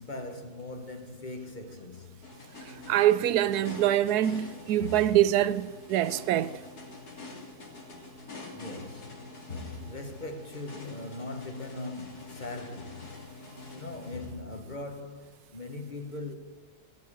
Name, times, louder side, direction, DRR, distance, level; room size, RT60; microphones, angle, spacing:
voice 1, 0.0-2.3 8.5-9.4 9.8-13.2 13.7-16.4, left 2 dB, 35° left, 1.1 m, -40 dB
sound 1, 2.2-15.0, left 3 dB, 85° left, 3.0 m, -45 dB
voice 2, 2.9-6.6, right 12 dB, 90° right, 1.2 m, -24 dB
16.0 x 7.9 x 8.7 m
omnidirectional pair, 1.6 m